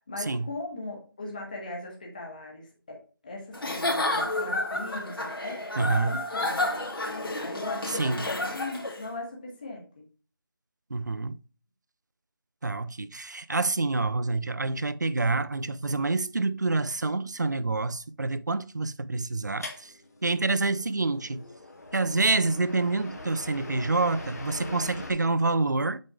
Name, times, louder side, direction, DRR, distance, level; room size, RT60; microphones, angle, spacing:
voice 1, 0.1-5.6 6.0-6.8 7.4-10.0, left 2 dB, 20° left, 1.4 m, -39 dB
Giggle / Chuckle chortle, 3.5-9.0, left 2 dB, 70° left, 2.3 m, -30 dB
voice 2, 5.8-6.2 7.9-8.3 10.9-11.4 12.6-19.9 20.2-21.4 21.9-26.0, right 3 dB, 50° right, 0.4 m, -27 dB
sound 1, 19.6-25.1, left 2 dB, 45° left, 1.4 m, -42 dB
7.9 x 3.7 x 4.8 m
figure-of-eight pair, 175°, 12 cm